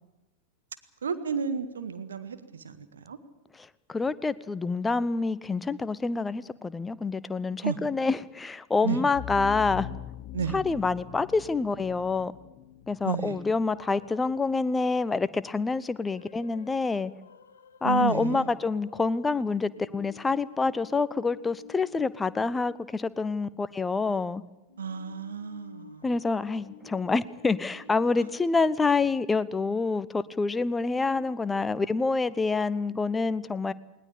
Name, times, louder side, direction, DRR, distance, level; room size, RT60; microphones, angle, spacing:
voice 1, 1.0-3.2 7.6-7.8 8.8-9.0 10.3-10.6 13.0-13.4 17.8-18.5 24.8-26.1, right 6 dB, 70° right, 10 dB, 1.7 m, -32 dB
voice 2, 3.6-9.9 10.5-12.3 12.9-17.1 17.8-24.4 26.0-33.7, left 4 dB, 10° left, 16 dB, 0.8 m, -27 dB
sound 1, 9.1-13.9, left 11 dB, 45° left, 0.9 m, -41 dB
sound 2, 13.7-14.8 16.0-23.3 23.5-23.6 24.7-29.6 30.8-31.3, left 5 dB, 70° left, 1.7 m, -52 dB
20.0 x 19.5 x 8.6 m, 0.96 s
figure-of-eight pair, 90°, 0 cm